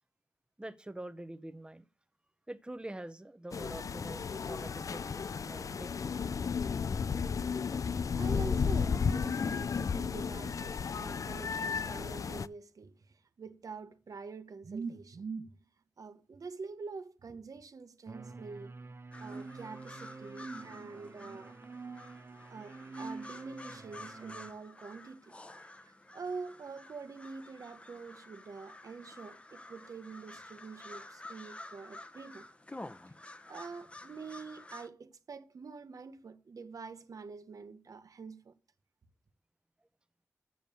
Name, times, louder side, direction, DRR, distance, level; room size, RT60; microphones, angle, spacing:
voice 1, 0.6-1.9 2.5-6.3, right 1 dB, 15° right, 0.7 m, -45 dB
sound 1, 3.5-12.5, left 6 dB, 70° left, 0.4 m, -33 dB
voice 2, 8.1-15.5 16.0-18.8 19.2-21.5 22.5-25.4 25.8-32.5 33.5-38.5, right 4 dB, 80° right, 1.0 m, -45 dB
sound 2, 18.1-24.5, right 4 dB, 45° right, 0.7 m, -47 dB
sound 3, 19.1-34.9, left 2 dB, 20° left, 0.7 m, -50 dB
7.8 x 6.9 x 6.8 m
wide cardioid pair, 95°, 6 cm